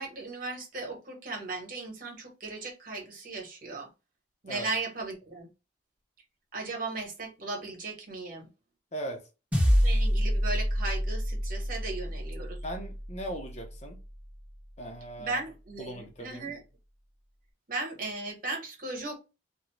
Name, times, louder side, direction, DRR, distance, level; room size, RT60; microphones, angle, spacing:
voice 1, 0.0-3.9 4.4-5.5 6.5-8.5 9.7-12.6 15.2-16.6 17.7-19.2, right 3 dB, 45° right, 1.2 m, -37 dB
voice 2, 8.9-9.2 12.6-14.0 14.8-15.4 15.8-16.5, right 1 dB, 35° left, 0.8 m, -39 dB
sound 1, 9.5-14.1, equal, 10° right, 0.8 m, -28 dB
2.6 x 2.3 x 3.1 m
head